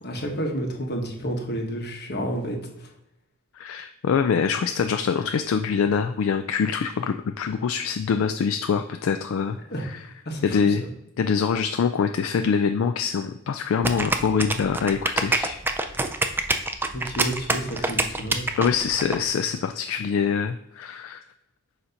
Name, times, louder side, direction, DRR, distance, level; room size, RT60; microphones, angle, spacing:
voice 1, 0.0-2.6 9.7-9.8 10.2-10.9 16.9-18.5, right 1 dB, 50° left, 2 dB, 1.1 m, -30 dB
voice 2, 3.6-10.0 10.4-10.8 11.2-15.6 18.6-21.2, left 6 dB, 70° left, 7 dB, 0.3 m, -24 dB
sound 1, 13.8-19.2, right 2 dB, 10° right, 0.3 m, -25 dB
6.8 x 2.9 x 5.0 m, 0.86 s
head